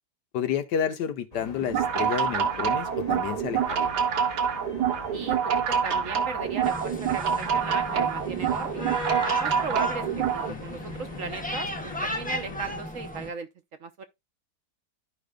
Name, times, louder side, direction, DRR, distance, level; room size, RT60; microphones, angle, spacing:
voice 1, 0.3-3.9 10.5-10.8, left 8 dB, 75° left, 1.5 m, -30 dB
sound 1, 1.3-12.8, left 2 dB, 25° left, 1.1 m, -42 dB
sound 2, 1.6-10.5, right 8 dB, 75° right, 1.7 m, -26 dB
voice 2, 5.1-8.9 9.2-13.5 13.8-14.0, right 5 dB, 55° right, 1.1 m, -37 dB
sound 3, 6.6-13.3, left 1 dB, 10° left, 0.6 m, -36 dB
13.5 x 5.2 x 2.3 m
omnidirectional pair, 1.8 m